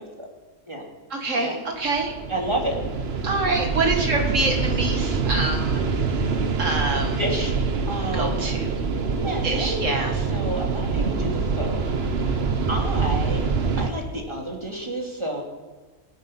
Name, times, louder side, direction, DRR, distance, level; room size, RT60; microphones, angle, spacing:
voice 1, 1.1-2.1 3.2-5.8 6.6-7.2 8.1-8.7 9.4-10.2, right 3 dB, 65° right, 3 dB, 2.3 m, -26 dB
sound 1, 1.8-13.9, right 4 dB, 50° right, 1.3 m, -25 dB
voice 2, 2.3-2.8 5.0-5.1 6.6-6.8 7.2-7.5 7.9-8.5 9.1-9.9 10.1-11.9 12.2-12.4 12.7-13.5 13.8-15.4, right 1 dB, 20° right, 0 dB, 2.6 m, -30 dB
19.0 x 9.5 x 5.7 m, 1.3 s
omnidirectional pair, 1.4 m